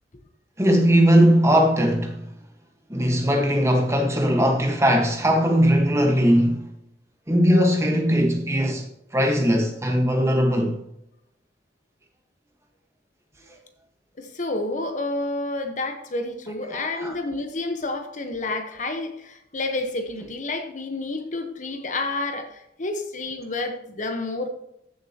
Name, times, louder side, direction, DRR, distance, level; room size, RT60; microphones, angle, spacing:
voice 1, 0.6-2.2 2.9-6.7 7.3-8.8 9.1-10.8 16.7-17.1, equal, 15° right, 1.4 m, -19 dB
voice 2, 14.2-24.5, left 2 dB, 45° left, 1.1 m, -29 dB
14.5 x 7.1 x 2.9 m
head